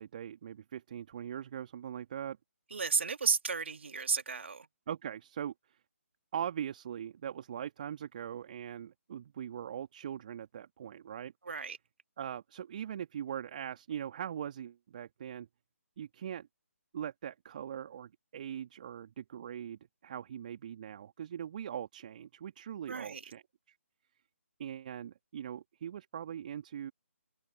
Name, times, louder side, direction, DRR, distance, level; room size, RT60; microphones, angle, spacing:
voice 1, 0.0-2.4 4.9-5.8 6.3-11.3 12.2-15.5 16.0-16.5 16.9-23.4 23.7-23.8 24.6-26.9, right 9 dB, 35° right, 2.4 m, -41 dB
voice 2, 2.7-4.7 11.4-11.8 22.9-23.2, right 5 dB, 55° right, 2.3 m, -33 dB
open air
figure-of-eight pair, 145°, 8 cm